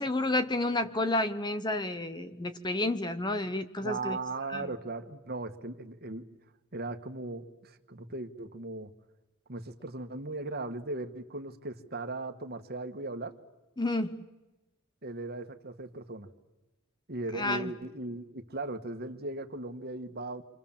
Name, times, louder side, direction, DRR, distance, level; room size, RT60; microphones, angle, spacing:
voice 1, 0.0-4.2 4.5-4.7 13.8-14.2 17.3-17.7, left 2 dB, 20° left, 10 dB, 1.0 m, -30 dB
voice 2, 3.8-6.2 6.7-8.9 9.5-13.3 15.0-16.3 17.1-20.4, right 2 dB, 45° right, 7 dB, 1.7 m, -38 dB
27.0 x 26.5 x 7.4 m, 1.1 s
head